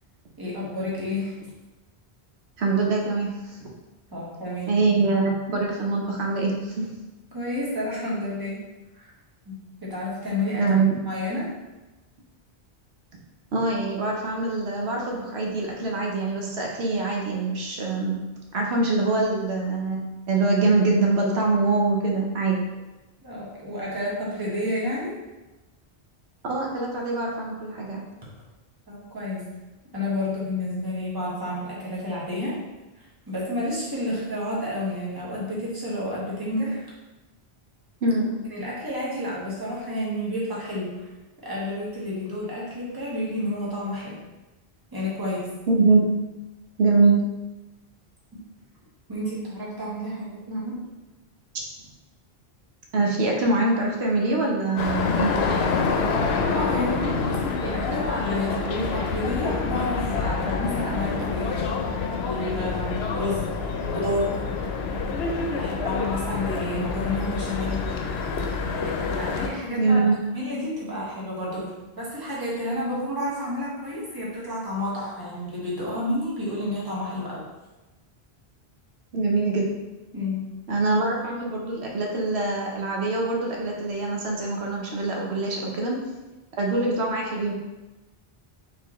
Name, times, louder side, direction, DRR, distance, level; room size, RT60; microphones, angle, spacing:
voice 1, 0.4-1.4 4.1-4.8 7.3-8.6 8.9-9.1 9.5-10.6 11.1-11.5 23.2-25.1 28.9-29.4 29.9-32.6 33.0-36.8 38.5-41.0 41.4-44.2 44.9-45.5 49.1-50.8 56.5-61.6 62.2-64.3 65.6-67.9 69.2-70.0 70.3-77.4 80.1-80.5, left 1 dB, 20° right, -6 dB, 1.2 m, -30 dB
voice 2, 2.6-3.7 4.7-6.9 10.5-11.0 13.5-18.2 18.5-20.0 20.3-22.6 26.4-28.0 38.0-38.4 45.7-46.1 46.8-47.2 52.9-55.4 69.8-70.2 79.1-79.7 80.7-86.0 86.6-87.5, right 3 dB, 90° right, -1 dB, 1.1 m, -24 dB
sound 1, 54.8-69.5, left 4 dB, 80° left, 0.8 m, -27 dB
4.4 x 3.7 x 3.1 m, 1.1 s
omnidirectional pair, 1.1 m